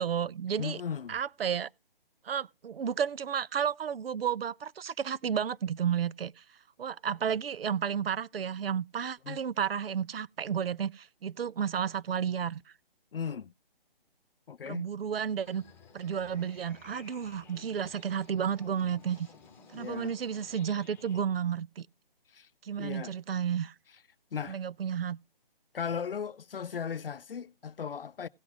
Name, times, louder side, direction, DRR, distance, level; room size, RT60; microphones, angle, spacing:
voice 1, 0.0-0.8 1.1-1.7 2.2-6.4 6.8-12.7 14.7-15.6 15.9-19.3 19.7-21.9 22.6-23.7 24.5-25.2, right 8 dB, 75° right, 0.6 m, -32 dB
voice 2, 0.6-1.1 9.2-9.4 13.1-13.5 14.5-14.9 19.7-20.2 22.3-22.5 22.8-23.1 24.3-24.6 25.7-28.3, left 7 dB, 70° left, 0.6 m, -37 dB
sound 1, 15.4-21.2, left 5 dB, 5° left, 3.3 m, -55 dB
17.5 x 6.1 x 3.6 m
figure-of-eight pair, 155°, 29 cm